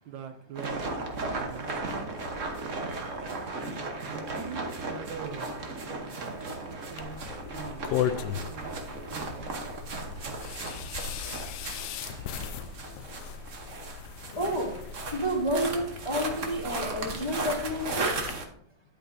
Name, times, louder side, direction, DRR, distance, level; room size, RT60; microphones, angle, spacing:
voice 1, 0.0-1.0 1.4-2.1 4.0-5.5 6.8-8.7 9.1-9.6, right 7 dB, 75° right, 7 dB, 1.3 m, -43 dB
sound 1, 0.6-18.5, right 3 dB, 45° right, 1.2 m, -36 dB
voice 2, 2.7-3.2 11.9-12.5 13.4-13.5 14.0-18.4, equal, 40° left, 1 dB, 0.4 m, -32 dB
sound 2, 7.0-18.3, left 9 dB, 70° left, 1.0 m, -38 dB
10.0 x 8.7 x 2.6 m, 0.65 s
omnidirectional pair, 2.2 m